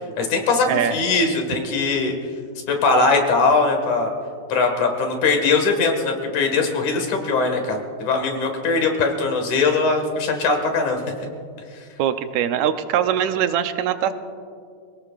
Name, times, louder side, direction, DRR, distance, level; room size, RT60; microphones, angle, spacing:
voice 1, 0.2-2.1 2.7-4.1 4.5-11.0, left 3 dB, 85° left, 3 dB, 3.3 m, -20 dB
voice 2, 12.0-14.1, right 9 dB, 80° right, 9 dB, 2.0 m, -22 dB
27.0 x 17.5 x 2.5 m, 2.3 s
omnidirectional pair, 3.3 m